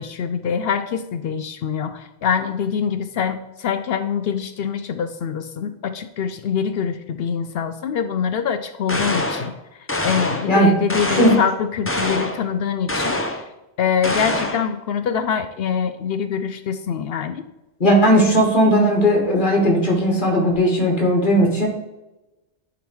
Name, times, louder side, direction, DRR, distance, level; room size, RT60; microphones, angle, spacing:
voice 1, 0.0-9.6 10.0-13.2 13.8-17.5, left 7 dB, 65° left, 10 dB, 0.7 m, -24 dB
sound 1, 8.9-9.5 9.9-10.5 10.9-11.5 11.9-12.4 12.9-13.5 14.0-14.7, left 1 dB, 15° left, 0.5 m, -24 dB
voice 2, 17.8-21.7, equal, 45° left, 1 dB, 1.9 m, -17 dB
10.0 x 3.8 x 4.7 m, 0.97 s
omnidirectional pair, 1.2 m